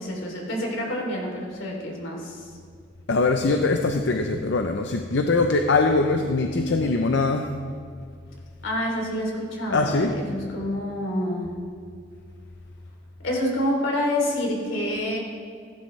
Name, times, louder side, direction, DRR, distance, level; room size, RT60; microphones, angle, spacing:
voice 1, 0.0-2.5 8.6-11.5 13.2-15.2, left 1 dB, 80° left, -1 dB, 3.1 m, -27 dB
voice 2, 3.1-7.5 9.7-10.2, left 3 dB, 65° left, 5 dB, 0.6 m, -22 dB
16.0 x 11.5 x 3.2 m, 2.2 s
head